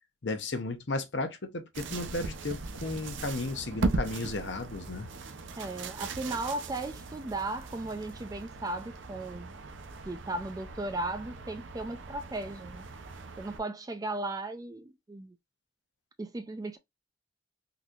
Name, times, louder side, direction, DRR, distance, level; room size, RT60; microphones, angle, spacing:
voice 1, 0.2-5.1, left 2 dB, 60° left, 0.8 m, -34 dB
sound 1, 1.7-13.6, right 3 dB, 70° right, 0.6 m, -38 dB
voice 2, 5.6-9.6 10.1-12.9 13.4-15.4 16.2-16.8, right 2 dB, 20° right, 0.3 m, -36 dB
3.8 x 2.7 x 2.4 m
head